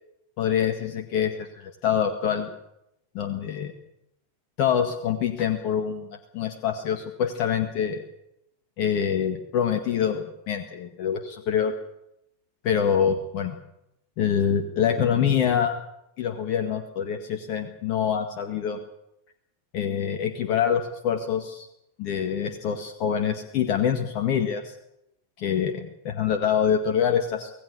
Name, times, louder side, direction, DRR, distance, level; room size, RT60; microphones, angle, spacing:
voice 1, 0.4-2.5 3.1-3.7 4.6-8.0 8.8-11.7 12.6-13.6 14.2-15.8 16.2-18.8 19.7-21.7 22.0-24.8 25.4-27.5, left 8 dB, 45° left, 6 dB, 1.8 m, -25 dB
25.0 x 17.5 x 6.9 m, 0.84 s
figure-of-eight pair, 90°, 0 cm